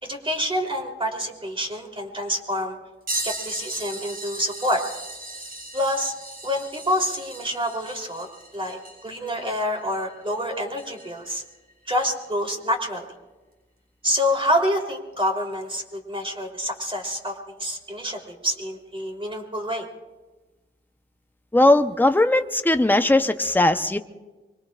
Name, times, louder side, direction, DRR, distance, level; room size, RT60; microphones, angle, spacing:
voice 1, 0.0-2.7 3.2-4.8 5.7-6.1 6.4-8.3 8.5-11.4 11.9-13.1 14.0-19.9, equal, 25° right, 1 dB, 3.4 m, -27 dB
sound 1, 3.1-11.3 12.0-12.1 14.4-14.5 15.5-15.7 16.8-16.9, right 1 dB, 45° right, 6.6 m, -37 dB
voice 2, 21.5-24.0, left 1 dB, 10° left, 8 dB, 0.8 m, -19 dB
25.0 x 23.0 x 2.5 m, 1.2 s
cardioid pair, 75°, 21 cm